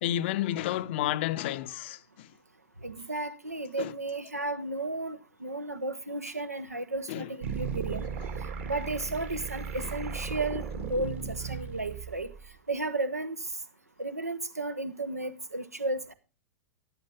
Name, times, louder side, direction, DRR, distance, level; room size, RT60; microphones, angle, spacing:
voice 1, 0.0-2.3 3.8-3.9 7.1-7.3, left 13 dB, 45° left, 0.7 m, -31 dB
voice 2, 2.8-8.1 8.6-12.3 12.7-13.4 14.0-16.1, right 2 dB, 80° right, 1.1 m, -33 dB
sound 1, 7.4-12.5, right 6 dB, 55° right, 2.8 m, -36 dB
14.0 x 11.0 x 3.7 m
figure-of-eight pair, 100°, 8 cm